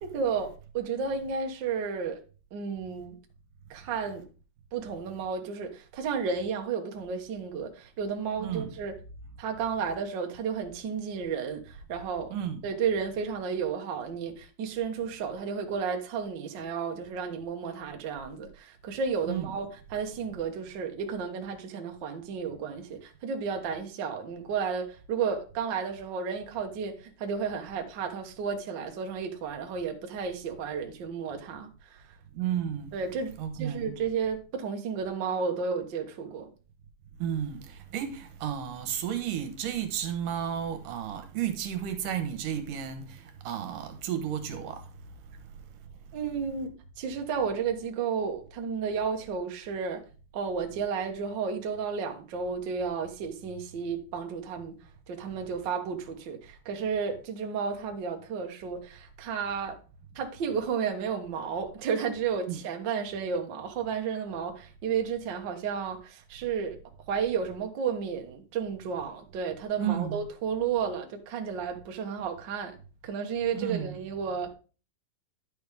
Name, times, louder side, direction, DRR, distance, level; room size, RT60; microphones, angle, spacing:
voice 1, 0.0-2.2 2.5-3.2 3.7-4.2 4.7-8.9 9.4-12.3 12.6-32.0 32.9-36.5 46.1-46.7 47.0-50.0 50.3-54.7 55.1-59.8 60.1-66.8 67.1-72.7 73.0-74.5, right 6 dB, 60° right, 1.2 m, -32 dB
voice 2, 8.4-8.7 12.3-12.6 19.3-19.5 32.3-32.9 33.4-33.9 37.2-44.9 62.5-62.6 69.8-70.2 73.6-73.9, right 9 dB, 80° right, 2.7 m, -32 dB
10.0 x 6.5 x 3.5 m
omnidirectional pair, 3.8 m